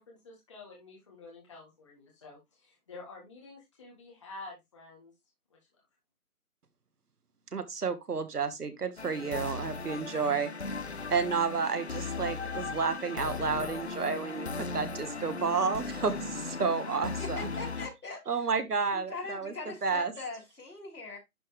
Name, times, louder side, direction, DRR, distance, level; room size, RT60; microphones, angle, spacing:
voice 1, 0.0-5.1 5.5-5.8, left 3 dB, 20° left, 1.8 m, -49 dB
voice 2, 7.5-10.5 11.1-17.5 18.3-19.5 19.8-20.1, right 5 dB, 85° right, 1.6 m, -31 dB
sound 1, 9.0-17.9, left 4 dB, 45° left, 0.6 m, -37 dB
voice 3, 17.2-18.5 18.9-21.2, left 3 dB, 90° left, 4.5 m, -41 dB
11.0 x 3.8 x 3.2 m
hypercardioid pair, 175°, 45 cm